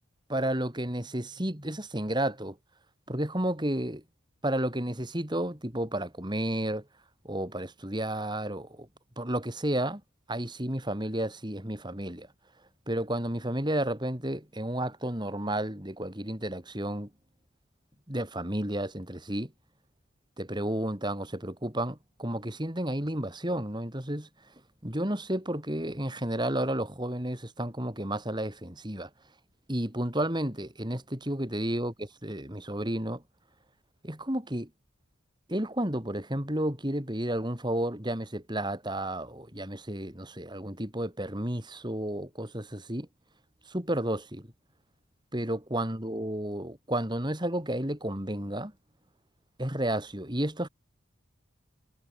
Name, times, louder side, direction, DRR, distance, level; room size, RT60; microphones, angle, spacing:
voice 1, 0.3-2.6 3.1-4.0 4.4-6.8 7.2-8.9 9.2-10.0 10.3-12.3 12.9-17.1 18.1-19.5 20.4-24.3 24.8-29.1 29.7-33.2 34.0-34.7 35.5-43.1 43.7-44.5 45.3-48.7 49.6-50.7, right 1 dB, 20° right, 3.6 m, -32 dB
head